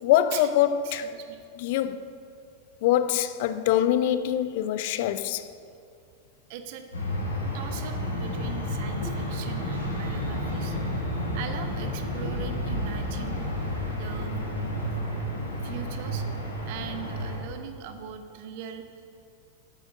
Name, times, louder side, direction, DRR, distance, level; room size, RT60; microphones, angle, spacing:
voice 1, 0.0-1.1 1.6-2.1 2.8-5.5, left 11 dB, 50° left, 0.4 m, -24 dB
voice 2, 1.0-1.4 6.5-6.8 7.5-10.8 11.3-13.4 13.9-14.3 15.6-16.2 16.7-18.8, right 9 dB, 50° right, 0.9 m, -40 dB
sound 1, 6.9-17.4, equal, 75° left, 2.0 m, -31 dB
8.5 x 7.7 x 6.5 m
figure-of-eight pair, 90°, 0 cm